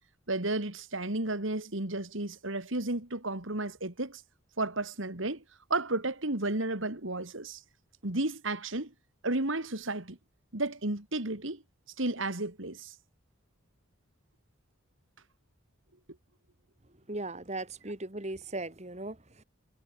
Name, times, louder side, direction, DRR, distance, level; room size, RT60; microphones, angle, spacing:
voice 1, 0.3-4.2 4.6-5.4 5.7-7.6 8.0-8.9 9.2-10.2 10.5-11.6 12.0-12.9, right 2 dB, 65° right, 2.9 m, -32 dB
voice 2, 17.1-19.4, right 2 dB, 35° right, 2.3 m, -38 dB
head